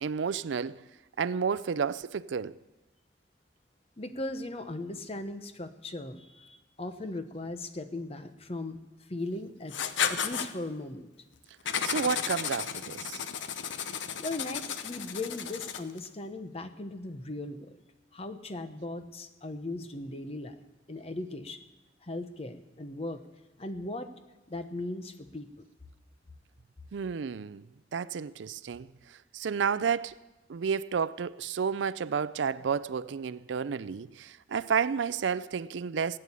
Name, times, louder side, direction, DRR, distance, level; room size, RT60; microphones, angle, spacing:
voice 1, 0.0-0.8 1.2-2.6 11.8-13.2 26.9-27.7 27.9-28.9 29.3-30.2 30.5-36.2, right 6 dB, 80° right, 0.4 m, -31 dB
voice 2, 4.0-8.8 9.1-9.8 10.1-11.1 14.2-17.8 18.1-20.6 20.9-21.6 22.0-23.2 23.6-24.1 24.5-25.6, left 2 dB, 35° left, 0.9 m, -38 dB
Writing, 9.7-10.5 11.7-16.0, left 7 dB, 90° left, 0.8 m, -33 dB
16.5 x 8.9 x 8.4 m
head